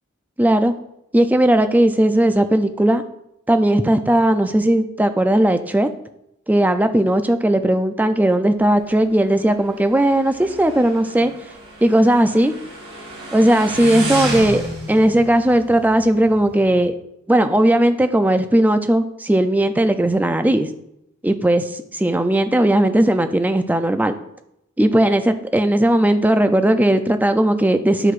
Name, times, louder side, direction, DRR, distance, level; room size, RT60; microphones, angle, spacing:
voice 1, 0.4-0.7 1.1-3.0 3.5-5.9 6.5-11.3 11.8-12.5 13.3-14.6 14.9-16.9 17.3-20.7 21.2-24.1 24.8-28.1, right 1 dB, 10° right, 9 dB, 0.3 m, -17 dB
Motorcycle, 8.6-16.9, right 1 dB, 50° right, 1.5 m, -32 dB
9.6 x 4.6 x 2.4 m, 0.81 s
head